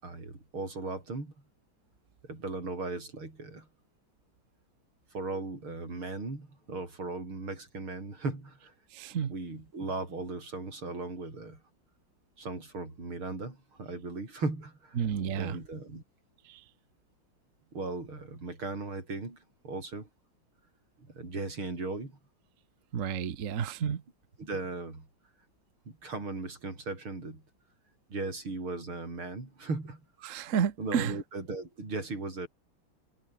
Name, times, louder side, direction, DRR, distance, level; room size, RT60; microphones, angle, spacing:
voice 1, 0.0-1.3 2.2-3.7 5.1-8.7 9.3-11.6 12.4-15.1 15.3-16.0 17.7-20.1 21.1-22.2 24.4-25.1 25.9-27.4 28.1-30.0 30.8-32.5, right 3 dB, 85° right, 7.3 m, -37 dB
voice 2, 8.9-9.3 15.0-15.6 16.5-16.6 22.9-24.0 30.2-31.1, right 8 dB, 45° right, 1.3 m, -31 dB
omnidirectional pair, 2.3 m